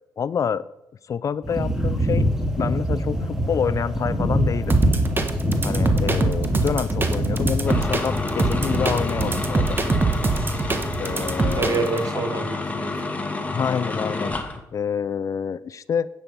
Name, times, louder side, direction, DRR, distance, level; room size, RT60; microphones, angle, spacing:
voice 1, 0.2-0.6 1.1-2.3 2.6-4.8 5.6-9.8 11.0-11.8 13.5-16.1, left 7 dB, 50° left, 17 dB, 0.4 m, -27 dB
sound 1, 1.4-11.6, equal, 5° right, 2.3 m, -25 dB
sound 2, 4.7-12.0, right 3 dB, 30° right, 1.3 m, -24 dB
sound 3, 7.7-14.6, left 3 dB, 20° left, 1.6 m, -29 dB
voice 2, 11.0-13.0, right 4 dB, 55° right, 6 dB, 1.8 m, -28 dB
9.6 x 7.5 x 5.3 m, 0.88 s
cardioid pair, 75°, 7 cm